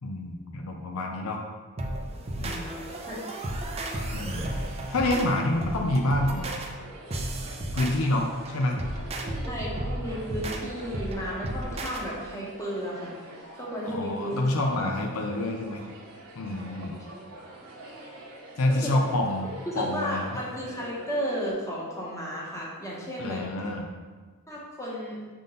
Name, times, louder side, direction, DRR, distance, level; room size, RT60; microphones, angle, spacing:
voice 1, 0.0-1.4 2.4-2.7 4.1-4.5 4.9-6.5 7.7-8.9 13.8-15.8 16.4-16.9 18.6-20.4 23.2-23.9, left 1 dB, 70° left, 2 dB, 0.6 m, -27 dB
sound 1, 1.8-12.0, right 1 dB, 30° right, 0.6 m, -34 dB
voice 2, 2.3-2.8 3.1-3.2 9.5-13.1 13.6-14.4 16.9-17.1 17.8-17.9 18.7-18.9 19.7-23.4 24.5-25.2, equal, 15° left, -5 dB, 1.3 m, -34 dB
sound 2, 2.4-21.5, right 2 dB, 65° right, 1.2 m, -46 dB
6.6 x 3.7 x 3.9 m, 1.4 s
head